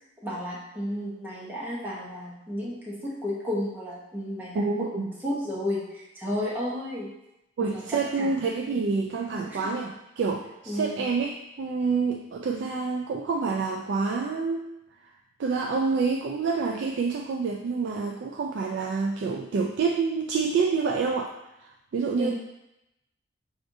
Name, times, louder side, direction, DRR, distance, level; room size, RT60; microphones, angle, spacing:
voice 1, 0.2-7.1 7.7-8.4 9.3-9.7 10.7-11.0 22.2-22.3, left 1 dB, 10° right, -6 dB, 0.8 m, -33 dB
voice 2, 4.6-5.1 7.6-14.6 15.4-21.3 21.6-22.3, right 4 dB, 65° right, 0 dB, 0.3 m, -27 dB
5.9 x 2.5 x 2.6 m, 0.89 s
head